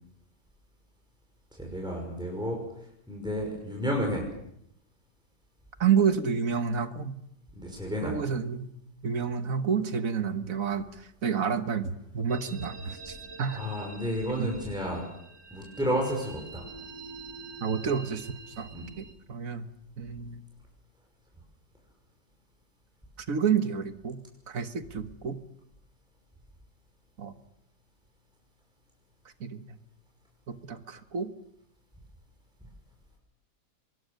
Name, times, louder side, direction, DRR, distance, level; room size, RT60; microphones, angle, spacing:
voice 1, 1.5-4.3 7.5-8.2 13.5-15.0 15.5-16.6 18.7-18.9, equal, ahead, 0 dB, 5.8 m, -31 dB
voice 2, 5.8-7.1 8.0-8.7 9.0-13.6 14.4-14.5 17.6-18.3 18.6-19.7 20.0-20.4 23.3-24.2 24.5-25.4 27.2-27.3 29.4-29.6 30.5-31.3, right 6 dB, 55° right, 10 dB, 1.7 m, -29 dB
sound 1, 12.3-19.1, right 3 dB, 70° right, 3.1 m, -46 dB
24.5 x 21.5 x 6.7 m, 0.74 s
omnidirectional pair, 1.8 m